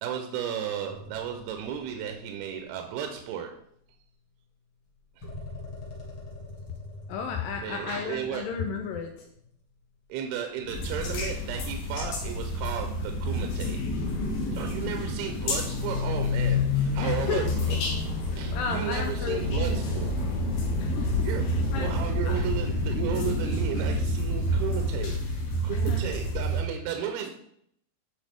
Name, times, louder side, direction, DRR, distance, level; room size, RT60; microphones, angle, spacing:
voice 1, 0.0-3.5 7.6-8.4 10.1-13.8 14.5-17.8 18.3-20.1 21.2-21.5 21.8-25.1 25.6-27.3, right 8 dB, 80° right, 4 dB, 2.5 m, -34 dB
sound 1, 0.9-3.0 3.7-3.8 4.9-10.0 10.6-16.4 16.9-19.3, left 1 dB, 50° left, 1.5 m, -44 dB
voice 2, 7.1-9.3 14.8-15.0 17.0-17.5 18.2-19.9 20.8-22.4 25.7-26.1, left 6 dB, 90° left, 4 dB, 2.0 m, -34 dB
sound 2, 10.7-26.6, equal, 70° left, 2.9 m, -29 dB
sound 3, 15.4-22.7, left 6 dB, 30° left, 1.6 m, -31 dB
11.5 x 4.3 x 3.5 m, 0.69 s
omnidirectional pair, 4.7 m